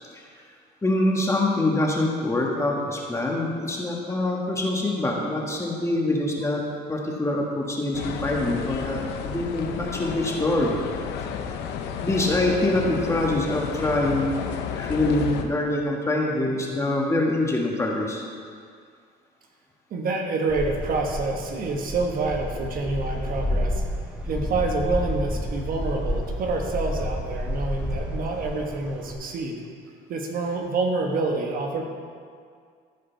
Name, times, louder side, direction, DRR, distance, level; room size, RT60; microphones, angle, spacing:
voice 1, 0.8-6.6 6.9-10.8 12.0-14.3 14.7-18.2, left 2 dB, 15° left, -2 dB, 1.6 m, -25 dB
sound 1, 7.9-15.4, left 7 dB, 85° left, 0.7 m, -32 dB
voice 2, 19.9-23.8 24.2-29.6 30.1-31.8, right 3 dB, 55° right, 1 dB, 1.3 m, -27 dB
sound 2, 20.5-29.1, equal, 5° right, 1.2 m, -30 dB
14.5 x 5.1 x 4.5 m, 2.1 s
cardioid pair, 110°, 17 cm